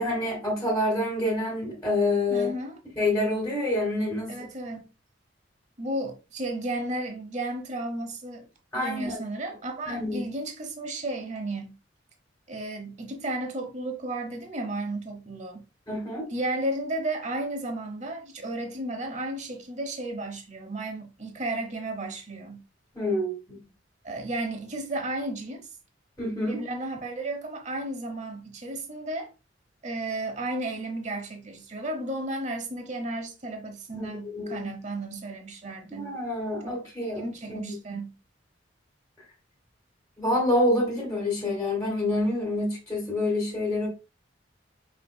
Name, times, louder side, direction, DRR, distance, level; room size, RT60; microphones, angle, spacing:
voice 1, 0.0-2.5 3.0-4.3 8.7-9.2 9.9-10.3 15.9-16.2 22.9-23.6 26.2-26.6 33.9-34.7 35.9-37.7 40.2-43.9, left 1 dB, 10° left, 1.7 m, -27 dB
voice 2, 2.3-2.8 4.3-4.9 5.8-8.5 8.7-11.8 12.5-15.6 16.3-22.6 24.0-25.6 26.4-29.3 29.8-36.1 36.6-38.2, right 2 dB, 40° right, 1.0 m, -33 dB
5.5 x 3.8 x 2.2 m
head